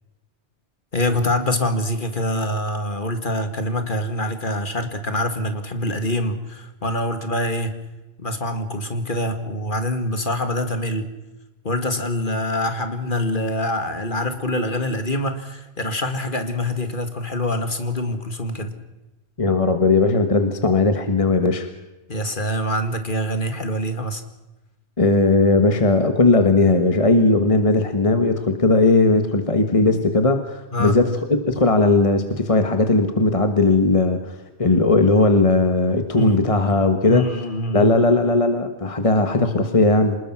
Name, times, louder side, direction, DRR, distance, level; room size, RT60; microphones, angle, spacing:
voice 1, 0.9-7.7 8.2-11.1 11.6-18.7 22.1-24.2 30.7-31.0 36.1-36.5 37.1-37.9, left 1 dB, 45° left, 8 dB, 2.3 m, -25 dB
voice 2, 19.4-21.7 25.0-37.3 37.7-40.2, left 2 dB, 30° left, 7 dB, 1.5 m, -18 dB
25.5 x 20.5 x 6.0 m, 1.0 s
omnidirectional pair, 1.2 m